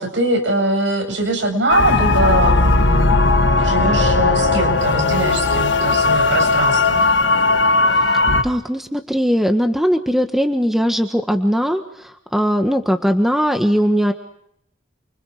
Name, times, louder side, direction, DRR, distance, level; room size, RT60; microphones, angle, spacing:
voice 1, 0.0-7.0, right 1 dB, 75° right, 5 dB, 7.6 m, -22 dB
sound 1, 1.7-8.4, left 3 dB, 80° left, 1.8 m, -16 dB
voice 2, 8.4-14.1, equal, ahead, 5 dB, 1.5 m, -19 dB
29.5 x 25.0 x 5.0 m, 0.71 s
head